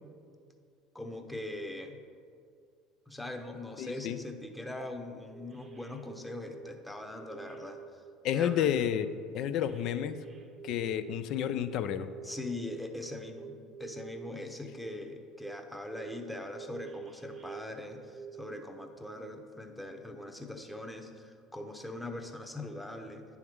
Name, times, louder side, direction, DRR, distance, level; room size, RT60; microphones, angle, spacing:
voice 1, 0.9-2.0 3.1-8.0 8.3-8.7 12.2-23.2, left 1 dB, 5° left, 4 dB, 0.8 m, -41 dB
voice 2, 3.8-4.2 8.2-10.2 10.6-12.1, left 9 dB, 55° left, 11 dB, 0.3 m, -30 dB
sound 1, 5.3-6.7 7.2-8.1 8.5-12.8 13.4-14.3 14.7-15.1 15.4-18.5, right 7 dB, 30° right, 0.6 m, -48 dB
10.0 x 3.6 x 4.6 m, 2.3 s
hypercardioid pair, 70°, 0 cm